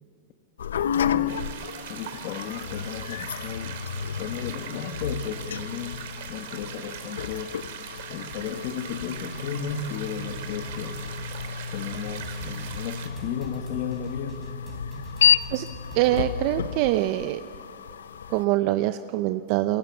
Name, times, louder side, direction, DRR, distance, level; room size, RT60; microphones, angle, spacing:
sound 1, 0.6-18.4, left 8 dB, 90° left, 0.7 m, -31 dB
voice 1, 1.0-1.4 1.9-3.8 4.2-6.0 6.3-7.5 8.1-11.0 11.7-14.4, left 8 dB, 50° left, 5 dB, 1.7 m, -34 dB
sound 2, 1.3-13.1, right 9 dB, 70° right, 3.3 m, -41 dB
sound 3, 10.1-16.2, right 6 dB, 20° right, 4.2 m, -46 dB
voice 2, 15.9-17.4 18.3-19.8, right 15 dB, 50° right, 10 dB, 0.7 m, -24 dB
28.5 x 21.5 x 7.2 m, 2.3 s
hypercardioid pair, 130°, 0 cm